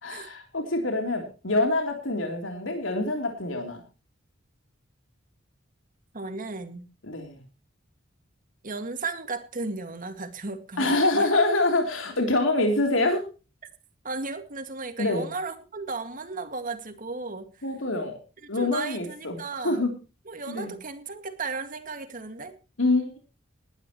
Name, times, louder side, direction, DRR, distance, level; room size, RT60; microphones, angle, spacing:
voice 1, 0.0-3.8 7.0-7.4 10.8-13.3 15.0-15.3 17.6-18.2 18.5-19.9 20.5-20.7 22.8-23.2, left 2 dB, 75° left, 3 dB, 3.4 m, -25 dB
voice 2, 6.1-6.9 8.6-11.3 14.0-17.5 18.5-19.9 20.3-22.5, right 3 dB, 45° right, 8 dB, 2.1 m, -35 dB
20.0 x 11.5 x 3.1 m, 0.32 s
head